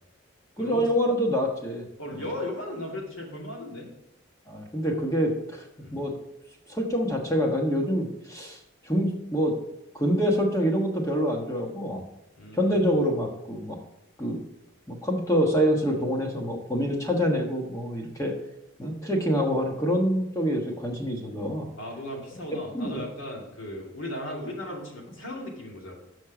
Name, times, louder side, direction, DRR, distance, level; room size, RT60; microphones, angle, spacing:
voice 1, 0.6-1.8 4.5-5.6 5.9-6.1 6.7-8.6 8.8-9.5 9.9-12.0 12.5-13.8 14.2-14.4 14.9-18.3 18.8-21.7 22.7-23.0, equal, 15° left, 1 dB, 1.3 m, -26 dB
voice 2, 2.0-3.9 5.8-6.0 12.4-12.9 21.8-25.9, left 1 dB, 75° left, -2 dB, 2.5 m, -36 dB
6.4 x 6.1 x 6.0 m, 0.87 s
head